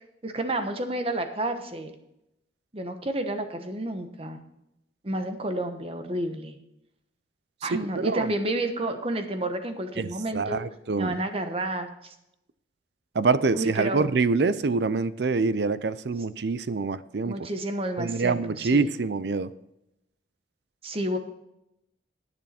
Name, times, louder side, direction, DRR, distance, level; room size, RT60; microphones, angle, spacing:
voice 1, 0.2-2.0 2.7-4.4 5.0-6.6 7.6-10.6 11.0-12.1 13.5-14.1 17.2-18.9 20.8-21.2, right 1 dB, 30° right, 7 dB, 1.1 m, -30 dB
voice 2, 7.7-8.3 10.0-11.2 13.1-17.5 18.0-19.5, right 4 dB, 60° right, 16 dB, 0.5 m, -25 dB
10.5 x 9.4 x 4.3 m, 0.83 s
head